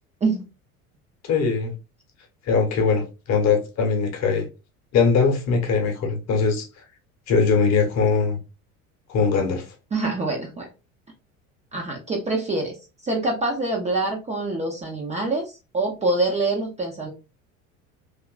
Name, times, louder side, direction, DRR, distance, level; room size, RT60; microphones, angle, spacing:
voice 1, 1.2-1.7 2.5-4.5 4.9-6.7 7.3-8.4 9.1-9.6, left 5 dB, 40° left, 0.9 m, -21 dB
voice 2, 9.9-10.7 11.7-12.7 13.0-17.1, right 2 dB, 15° right, 0.5 m, -25 dB
2.9 x 2.4 x 2.2 m
figure-of-eight pair, 65°, 43 cm